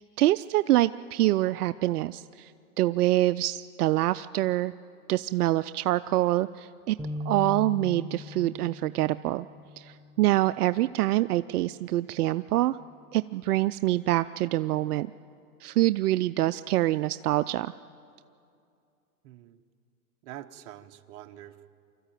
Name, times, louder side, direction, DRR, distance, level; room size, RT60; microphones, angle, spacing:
voice 1, 0.2-2.5 2.8-4.7 5.1-7.0 7.3-9.5 9.8-12.8 13.1-15.1 15.6-17.7, right 15 dB, 75° right, 14 dB, 0.5 m, -25 dB
sound 1, 7.0-10.5, left 3 dB, 5° right, 0.4 m, -39 dB
voice 2, 19.2-19.6 20.2-21.7, right 13 dB, 50° right, 8 dB, 1.1 m, -45 dB
25.0 x 14.0 x 9.1 m, 2.5 s
hypercardioid pair, 125°, 46 cm